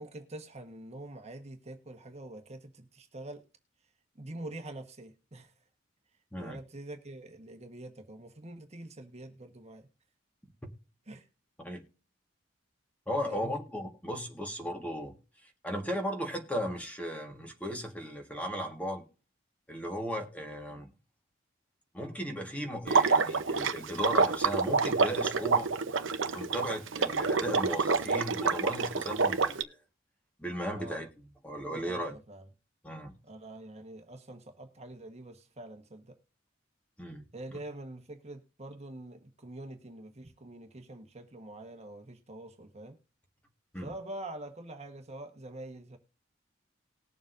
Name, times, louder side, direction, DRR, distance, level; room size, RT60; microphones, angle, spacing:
voice 1, 0.0-3.4 4.2-5.5 6.4-9.9 11.1-11.3 13.2-13.6 30.7-31.0 31.7-32.5 33.2-36.1 37.3-43.0 43.8-46.0, right 1 dB, 35° right, 1.3 m, -45 dB
voice 2, 13.1-15.2 15.6-19.0 19.7-20.9 21.9-25.7 26.3-29.8 30.4-31.1 31.4-32.2 32.8-33.2 37.0-37.2 37.5-37.6 43.7-43.9, equal, 5° left, 1.6 m, -36 dB
Water / Liquid, 22.9-29.6, right 4 dB, 85° right, 0.8 m, -27 dB
19.5 x 7.1 x 2.6 m
head